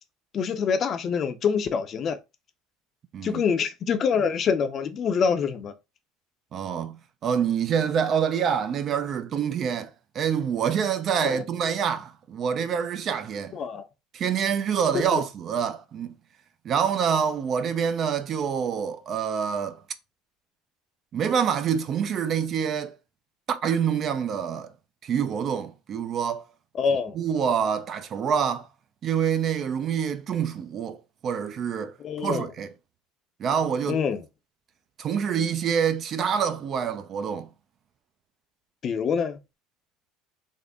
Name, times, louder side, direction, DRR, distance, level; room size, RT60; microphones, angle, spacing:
voice 1, 0.3-2.2 3.2-5.7 11.2-11.4 13.5-13.8 14.9-15.2 26.7-27.2 32.0-32.5 33.9-34.2 38.8-39.4, left 6 dB, 45° left, 0.6 m, -25 dB
voice 2, 6.5-13.6 14.1-16.1 16.6-19.8 21.1-23.0 23.5-24.7 25.0-26.4 27.1-28.7 29.0-31.0 31.2-31.9 32.2-32.7 33.4-34.0 35.0-37.5, right 7 dB, 45° right, 0.5 m, -26 dB
3.6 x 2.1 x 3.6 m
supercardioid pair, 100°, 0 cm